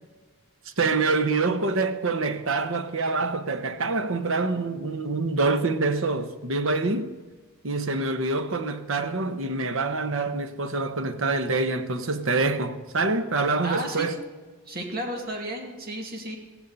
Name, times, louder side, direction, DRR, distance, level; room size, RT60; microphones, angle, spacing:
voice 1, 0.8-7.1 7.6-14.2, right 3 dB, 65° right, 1.1 m, -26 dB
voice 2, 13.6-14.1 14.7-16.4, right 1 dB, 45° right, 2.3 m, -33 dB
16.5 x 15.5 x 4.1 m
head